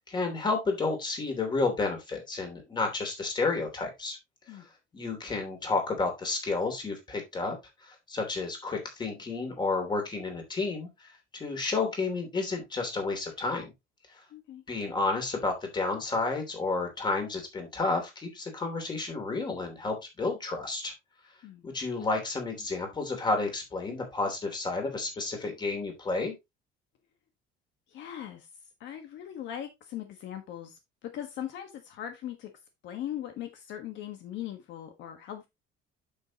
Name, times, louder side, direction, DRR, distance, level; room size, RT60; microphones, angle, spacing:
voice 1, 0.1-4.2 4.5-4.6 4.9-7.6 7.8-10.9 11.3-13.7 14.7-20.9 21.6-26.3, left 3 dB, 20° left, 4 dB, 3.0 m, -31 dB
voice 2, 14.3-14.6 21.4-21.6 27.9-28.5 28.8-32.5 32.8-35.5, left 11 dB, 65° left, 6 dB, 1.5 m, -40 dB
8.6 x 6.9 x 2.9 m, 0.21 s
cardioid pair, 160°, 20 cm